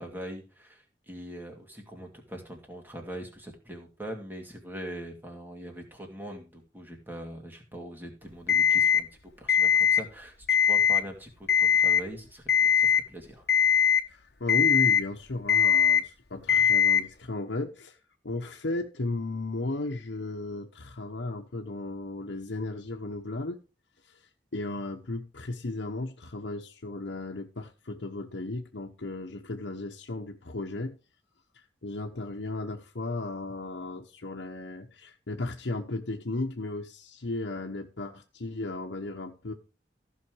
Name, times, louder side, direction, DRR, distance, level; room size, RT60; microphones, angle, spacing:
voice 1, 0.0-9.1 9.4-10.3 10.6-12.4 12.7-13.5, right 1 dB, 10° right, 2.5 m, -42 dB
Alarm, 8.5-9.0 9.5-10.0 10.4-11.0 11.5-12.0 12.5-13.0 13.5-14.0 14.5-15.0 15.5-16.0 16.5-17.0, left 8 dB, 65° left, 1.1 m, -21 dB
voice 2, 14.1-18.0 18.2-23.6 24.0-31.0 31.5-39.5, left 2 dB, 85° left, 1.0 m, -35 dB
14.5 x 5.8 x 4.6 m
head